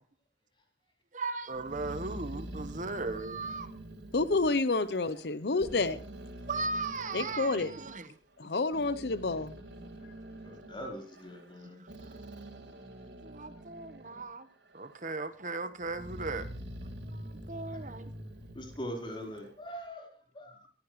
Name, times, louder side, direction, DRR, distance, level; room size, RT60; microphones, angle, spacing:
voice 1, 1.1-3.7 6.5-8.1 11.8-12.2 13.2-14.5 14.7-16.5 17.1-18.1, right 3 dB, 45° right, 1.3 m, -37 dB
Growling, 1.5-5.3 5.6-7.9 8.5-14.3 14.7-15.4 15.8-19.6, right 1 dB, 80° right, 4.0 m, -46 dB
voice 2, 4.1-6.0 7.1-7.7 8.4-9.5, left 3 dB, 65° left, 0.7 m, -29 dB
voice 3, 10.4-11.8 17.7-17.8 18.5-20.7, equal, 30° left, 4.3 m, -42 dB
22.5 x 14.5 x 3.2 m
head